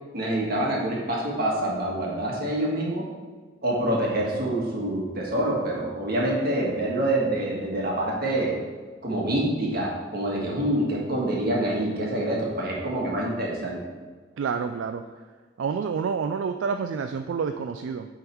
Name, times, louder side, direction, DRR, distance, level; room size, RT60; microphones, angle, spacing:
voice 1, 0.1-3.1 3.6-8.6 9.0-13.8, right 1 dB, 55° right, -3 dB, 1.6 m, -26 dB
voice 2, 14.4-15.0 15.6-18.1, right 6 dB, 75° right, 7 dB, 0.3 m, -28 dB
8.7 x 3.7 x 4.5 m, 1.4 s
head